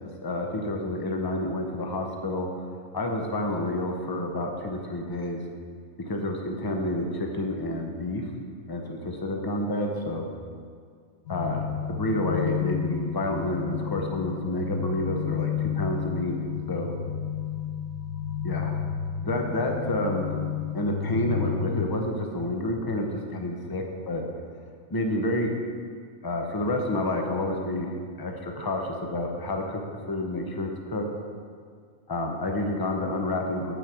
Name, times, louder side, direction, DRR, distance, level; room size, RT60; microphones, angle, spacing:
voice 1, 0.0-2.5 2.9-5.4 6.1-8.2 8.7-10.3 11.3-16.3 16.7-16.9 18.4-18.7 19.2-20.3 20.7-24.2 24.9-25.5 26.2-28.8 29.1-29.8 30.1-31.0 32.1-33.7, left 1 dB, 25° left, 2 dB, 0.5 m, -29 dB
sound 1, 11.3-21.9, left 9 dB, 80° left, 1.2 m, -31 dB
7.6 x 5.1 x 6.1 m, 2.1 s
omnidirectional pair, 1.5 m